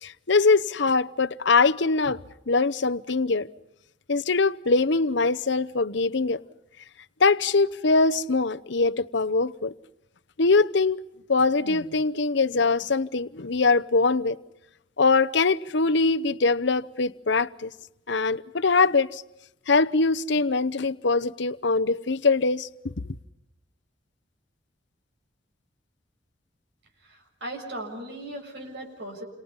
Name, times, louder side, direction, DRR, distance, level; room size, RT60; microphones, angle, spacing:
voice 1, 0.0-2.2 2.5-3.5 4.1-6.4 7.2-9.7 10.4-11.0 11.3-14.4 15.0-17.7 18.1-19.2 19.7-22.7, left 3 dB, 65° left, 0.9 m, -22 dB
voice 2, 27.0-29.2, right 1 dB, 65° right, 7.1 m, -38 dB
30.0 x 27.0 x 5.5 m
head